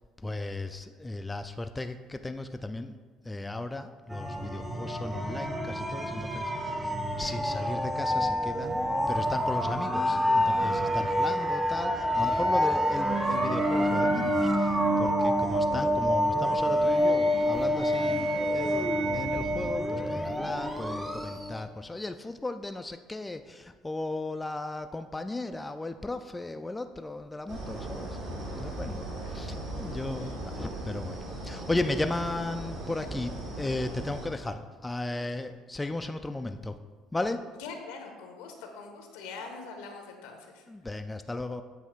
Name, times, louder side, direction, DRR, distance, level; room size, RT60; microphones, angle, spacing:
voice 1, 0.2-3.0 3.2-8.8 9.1-28.2 28.5-29.0 29.3-36.8 37.1-37.4 40.7-41.6, left 2 dB, 15° left, 7 dB, 0.3 m, -35 dB
sound 1, 4.1-21.6, equal, 10° right, 0.7 m, -27 dB
sound 2, 27.5-34.3, right 1 dB, 60° right, 1.9 m, -38 dB
voice 2, 29.2-29.6 30.2-30.3 37.6-40.6, left 4 dB, 75° left, 4 dB, 0.8 m, -43 dB
7.5 x 2.8 x 5.0 m, 1.5 s
hypercardioid pair, 65°, 0 cm